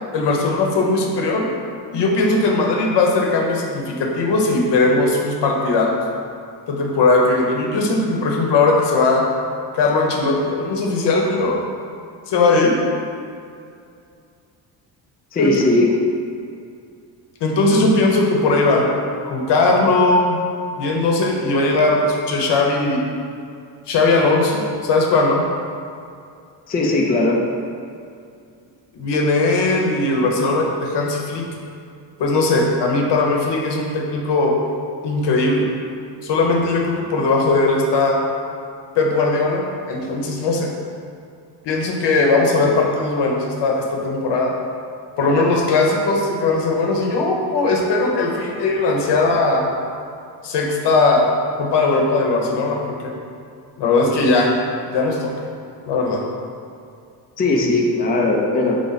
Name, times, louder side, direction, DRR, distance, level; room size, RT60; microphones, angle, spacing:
voice 1, 0.1-1.5 1.9-6.0 6.7-9.2 9.7-11.6 12.3-12.7 15.4-15.5 17.4-18.9 19.3-20.4 20.8-23.0 23.9-25.5 28.9-31.5 32.2-34.6 35.0-35.6 36.2-38.2 39.0-40.7 41.6-44.5 45.2-49.7 50.4-51.3 51.6-53.1 53.8-54.5 54.9-55.3 55.9-56.2, left 3 dB, 70° left, 0 dB, 0.9 m, -18 dB
voice 2, 15.3-15.9 26.7-27.4 57.4-58.8, left 2 dB, 20° left, -1 dB, 0.4 m, -18 dB
3.8 x 3.4 x 4.0 m, 2.4 s
cardioid pair, 110°, 44 cm